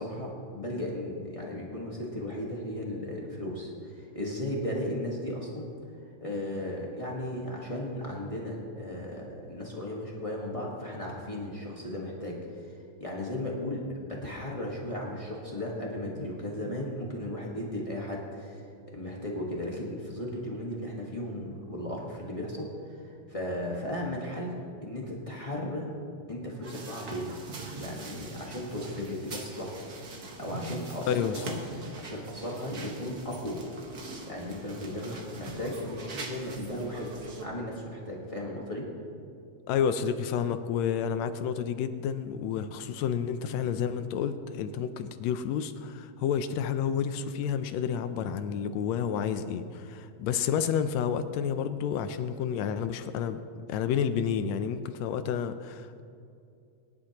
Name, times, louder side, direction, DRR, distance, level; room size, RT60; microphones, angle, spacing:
voice 1, 0.0-5.7 6.2-24.5 24.8-25.9 26.3-27.3 27.8-29.8 30.4-31.6 32.0-33.6 34.3-38.9, left 1 dB, 50° left, -3 dB, 0.4 m, -36 dB
sound 1, 26.6-37.4, right 3 dB, 50° right, 1.2 m, -42 dB
voice 2, 31.1-31.4 39.7-53.4 53.7-56.0, left 8 dB, 80° left, 10 dB, 1.7 m, -30 dB
22.5 x 11.0 x 2.9 m, 2.5 s
omnidirectional pair, 3.3 m